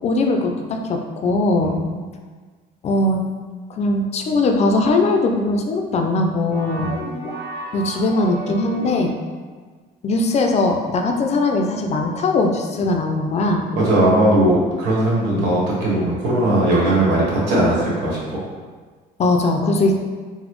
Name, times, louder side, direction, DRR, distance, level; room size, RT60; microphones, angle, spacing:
voice 1, 0.0-1.8 2.8-3.2 3.7-6.9 7.7-9.1 10.0-13.7 15.2-15.4 19.2-19.9, left 2 dB, 40° left, 3 dB, 0.4 m, -20 dB
voice 2, 1.6-1.9 6.8-7.0 13.7-18.4, right 1 dB, 90° right, -6 dB, 1.2 m, -19 dB
sound 1, 6.5-9.4, right 1 dB, 65° right, 0.9 m, -32 dB
3.9 x 2.1 x 3.0 m, 1.5 s
cardioid pair, 110°, 17 cm